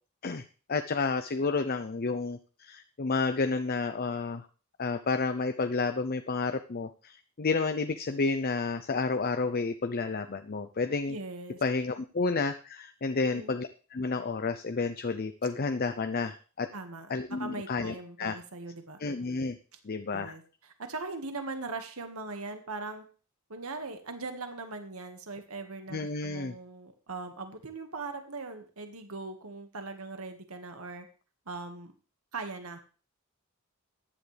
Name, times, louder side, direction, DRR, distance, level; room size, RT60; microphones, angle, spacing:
voice 1, 0.2-4.5 4.8-11.1 11.6-16.7 17.1-18.4 19.0-19.6 19.8-20.3 25.9-26.6, left 4 dB, 45° left, 9 dB, 0.6 m, -31 dB
voice 2, 11.1-11.6 13.1-13.5 16.7-17.1 17.4-19.0 20.1-23.0 23.5-31.1 31.5-31.9 32.3-32.8, right 3 dB, 90° right, 6 dB, 1.8 m, -40 dB
14.5 x 10.5 x 3.4 m, 0.36 s
head